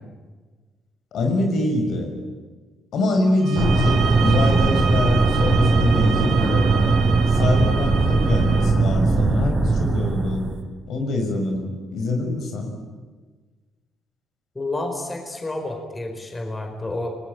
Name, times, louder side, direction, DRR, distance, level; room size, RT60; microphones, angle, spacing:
voice 1, 1.1-2.2 2.9-7.0 7.3-10.5 10.9-12.8, left 2 dB, 70° left, 3 dB, 6.2 m, -24 dB
sound 1, 3.4-8.7, right 7 dB, 75° right, 4.0 m, -30 dB
sound 2, 3.5-10.6, right 3 dB, 30° right, 4.0 m, -19 dB
voice 2, 14.5-17.2, left 2 dB, 20° left, 4 dB, 4.7 m, -30 dB
29.0 x 20.0 x 9.5 m, 1.3 s
cardioid pair, 90°, 0 cm